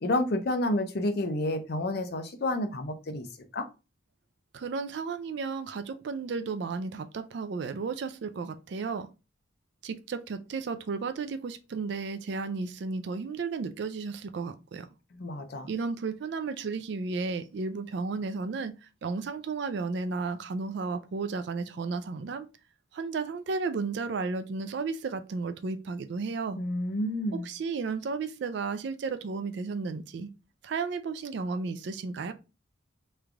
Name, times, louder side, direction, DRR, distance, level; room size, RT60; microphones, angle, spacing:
voice 1, 0.0-3.3 3.5-3.7 15.1-15.7 26.6-27.5, left 1 dB, 55° left, 0.5 m, -30 dB
voice 2, 4.5-9.1 9.8-14.9 15.7-22.5 22.9-26.6 27.4-30.3 30.6-32.3, right 4 dB, 60° right, 0.3 m, -33 dB
3.2 x 2.5 x 3.3 m
head